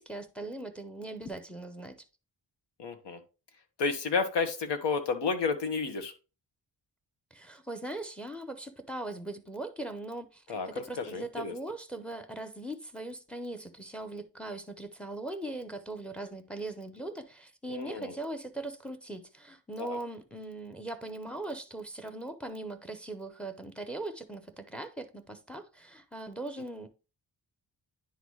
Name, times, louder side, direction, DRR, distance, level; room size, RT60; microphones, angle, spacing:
voice 1, 0.0-2.0 7.3-26.9, right 2 dB, 5° left, 0.7 m, -40 dB
voice 2, 2.8-3.2 3.8-6.1 10.5-10.7 11.0-11.5 17.7-18.2 19.8-20.0, left 4 dB, 80° left, 1.4 m, -31 dB
10.0 x 4.0 x 3.1 m
wide cardioid pair, 150°, 42 cm